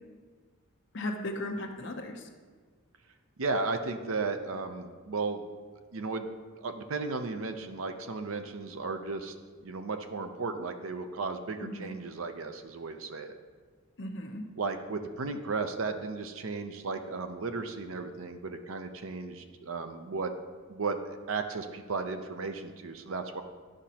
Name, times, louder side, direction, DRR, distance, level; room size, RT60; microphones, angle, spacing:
voice 1, 0.9-2.3 11.6-11.9 14.0-14.4, left 1 dB, 55° left, 3 dB, 0.7 m, -36 dB
voice 2, 3.4-5.5 5.9-6.3 6.6-9.3 9.6-13.4 14.6-20.3 20.7-23.4, right 4 dB, 70° right, 7 dB, 0.6 m, -35 dB
12.0 x 5.1 x 2.9 m, 1.5 s
head